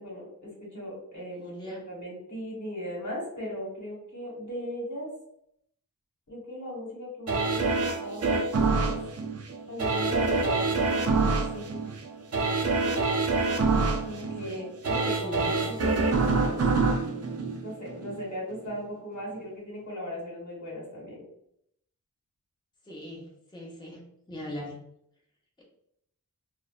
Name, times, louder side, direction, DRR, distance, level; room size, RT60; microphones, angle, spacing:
voice 1, 0.0-5.1 6.3-9.0 9.7-11.0 11.5-11.7 14.1-16.6 17.6-21.2, equal, 60° left, -4 dB, 1.2 m, -38 dB
voice 2, 1.2-1.9 14.4-15.9 22.8-24.8, left 1 dB, 15° left, -4 dB, 0.7 m, -41 dB
sound 1, 7.3-18.2 18.7-18.8, right 3 dB, 45° right, 0.4 m, -26 dB
2.6 x 2.1 x 2.3 m, 0.74 s
cardioid pair, 40°, 34 cm